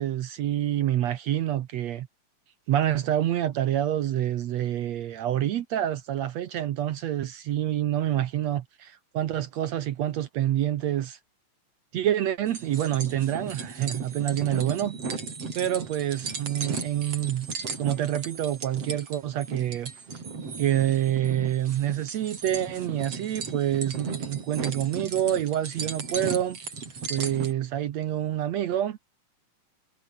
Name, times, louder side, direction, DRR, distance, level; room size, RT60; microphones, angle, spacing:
voice 1, 0.0-2.1 2.7-11.2 11.9-15.0 15.5-17.5 17.8-19.9 20.6-26.6 27.1-29.1, right 12 dB, 65° right, 1.9 m, -27 dB
sound 1, 12.5-27.5, right 4 dB, 45° right, 5.2 m, -36 dB
omnidirectional pair, 4.0 m